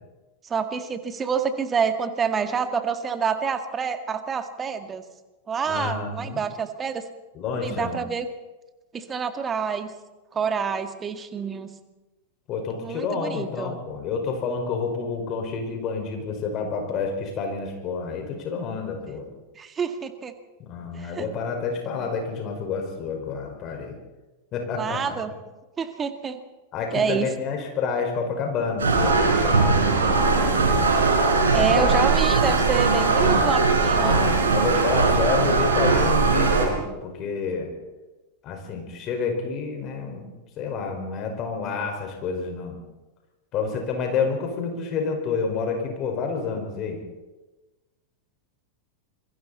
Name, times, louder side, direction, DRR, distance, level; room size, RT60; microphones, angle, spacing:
voice 1, 0.4-5.0 5.5-7.0 7.5-8.3 8.9-9.9 10.3-11.7 12.8-13.8 19.6-20.3 20.9-21.3 24.7-25.3 25.8-26.4 26.9-27.3 31.5-34.2, right 6 dB, 20° right, 8 dB, 1.9 m, -27 dB
voice 2, 5.7-6.4 7.3-8.0 12.5-19.3 20.6-23.9 24.5-25.1 26.7-30.8 31.5-32.0 33.1-33.6 33.9-37.7 38.4-40.2 40.6-42.8 43.5-47.0, left 5 dB, 35° left, 3 dB, 5.0 m, -29 dB
sound 1, 28.8-36.7, right 4 dB, 70° right, 5.5 m, -20 dB
28.0 x 22.5 x 4.2 m, 1.1 s
figure-of-eight pair, 90°, 0 cm